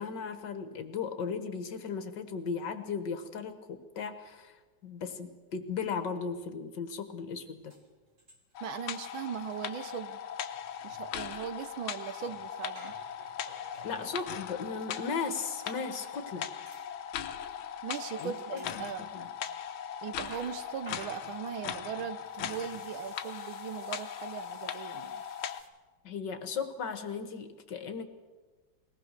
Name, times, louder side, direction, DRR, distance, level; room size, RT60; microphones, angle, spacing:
voice 1, 0.0-7.7 13.8-16.5 18.2-18.3 18.7-19.3 26.0-28.1, left 5 dB, 60° left, 9 dB, 1.9 m, -36 dB
sound 1, 7.3-7.4 7.7-8.7 9.0-9.1 9.4-15.9 16.7-16.9 17.4-17.6 18.0-19.6 19.9-25.7, right 1 dB, 30° right, 2.5 m, -56 dB
sound 2, 8.5-25.6, left 9 dB, 80° left, 1.7 m, -39 dB
voice 2, 8.6-10.2 10.8-13.0 17.8-19.0 20.0-25.2, right 9 dB, 75° right, 12 dB, 1.6 m, -39 dB
21.5 x 18.5 x 6.5 m, 1.3 s
omnidirectional pair, 2.3 m